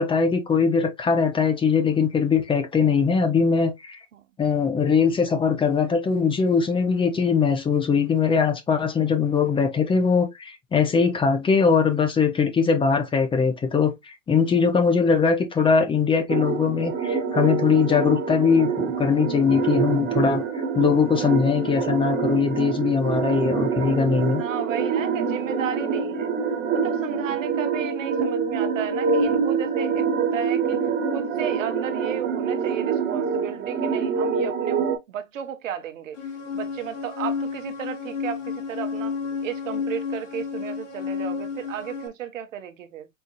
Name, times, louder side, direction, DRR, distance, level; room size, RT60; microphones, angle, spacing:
voice 1, 0.0-4.0 4.4-20.4 20.7-24.4, left 5 dB, 15° left, 0.6 m, -21 dB
sound 1, 16.3-35.0, right 6 dB, 25° right, 1.3 m, -26 dB
voice 2, 24.4-26.3 26.8-30.8 31.1-36.2 36.5-43.1, right 9 dB, 75° right, 1.0 m, -34 dB
sound 2, 36.2-42.1, left 5 dB, 70° left, 1.7 m, -31 dB
4.4 x 3.6 x 2.5 m
hypercardioid pair, 115°, 39 cm